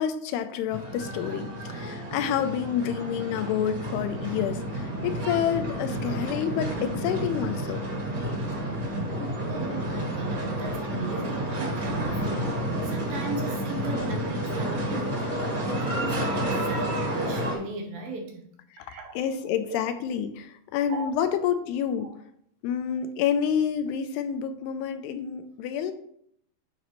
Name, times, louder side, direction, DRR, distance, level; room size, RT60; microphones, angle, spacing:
voice 1, 0.0-7.8 18.7-18.9 19.2-22.1 22.6-25.9, left 8 dB, 85° left, 9 dB, 2.6 m, -28 dB
sound 1, 0.7-17.5, right 1 dB, 35° right, 1.9 m, -30 dB
voice 2, 9.5-18.5 18.9-19.1 19.7-19.8 20.9-21.1 22.0-22.1 25.5-25.6, right 2 dB, 70° right, 1 dB, 2.5 m, -37 dB
11.5 x 5.2 x 3.0 m, 0.68 s
omnidirectional pair, 4.8 m